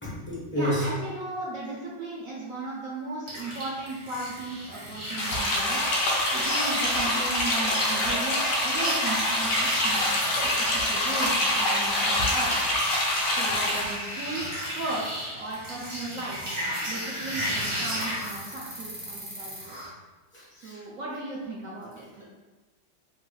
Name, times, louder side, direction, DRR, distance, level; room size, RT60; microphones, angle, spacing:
voice 1, 0.0-0.9 20.3-20.8, equal, 10° left, -9 dB, 0.6 m, -30 dB
voice 2, 0.6-10.0 10.4-12.6 13.3-14.5 14.8-16.4 16.9-19.8 20.6-22.2, right 2 dB, 70° right, -5 dB, 0.8 m, -36 dB
sound 1, 3.3-19.9, equal, 45° right, 0.4 m, -36 dB
sound 2, 5.2-14.0, left 1 dB, 65° left, 0.9 m, -25 dB
3.1 x 3.1 x 2.2 m, 1.2 s
omnidirectional pair, 1.9 m